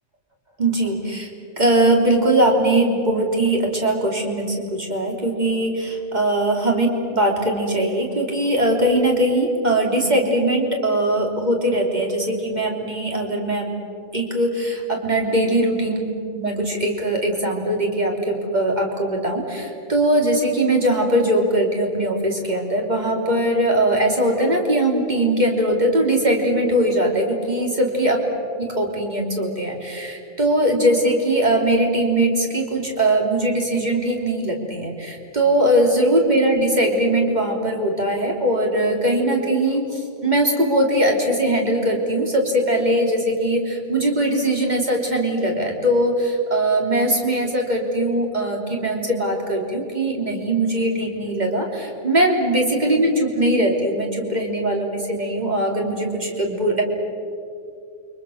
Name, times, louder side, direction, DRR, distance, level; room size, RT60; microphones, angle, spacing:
voice 1, 0.6-1.3 1.6-13.7 14.1-16.0 16.3-28.2 28.6-56.8, right 1 dB, 30° right, 1 dB, 3.6 m, -21 dB
29.0 x 24.5 x 6.6 m, 2.5 s
omnidirectional pair, 1.4 m